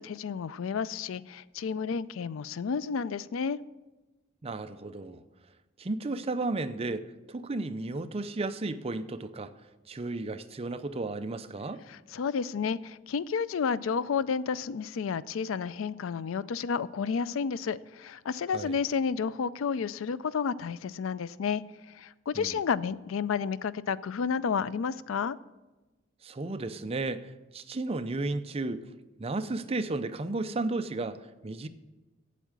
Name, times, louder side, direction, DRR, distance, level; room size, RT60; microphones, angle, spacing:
voice 1, 0.0-3.6 11.9-25.4, left 6 dB, 85° left, 0.4 m, -31 dB
voice 2, 4.4-5.2 5.8-9.5 9.9-11.8 18.5-18.8 22.3-22.6 26.2-28.9 29.2-31.7, right 2 dB, 30° right, 0.5 m, -33 dB
8.4 x 8.1 x 7.4 m
head